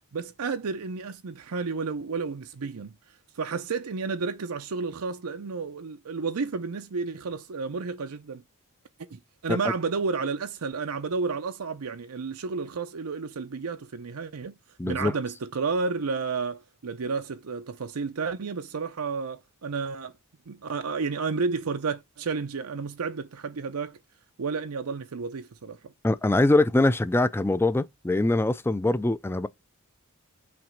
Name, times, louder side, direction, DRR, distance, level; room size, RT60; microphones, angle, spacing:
voice 1, 0.1-2.9 3.4-8.4 9.1-14.5 14.8-20.1 20.5-24.0 24.4-25.9, right 4 dB, 80° right, 0.6 m, -31 dB
voice 2, 14.8-15.1 26.0-29.5, left 2 dB, 10° left, 0.4 m, -23 dB
5.9 x 3.1 x 5.1 m
head